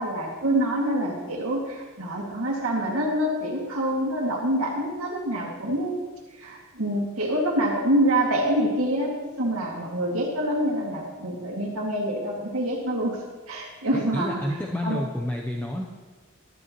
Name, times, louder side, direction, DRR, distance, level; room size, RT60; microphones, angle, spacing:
voice 1, 0.0-6.0 6.4-13.2 13.5-14.6 14.8-15.0, right 1 dB, 75° right, -2 dB, 2.1 m, -26 dB
voice 2, 13.9-15.8, left 1 dB, 10° left, -2 dB, 0.6 m, -29 dB
12.0 x 11.0 x 3.0 m, 1.3 s
head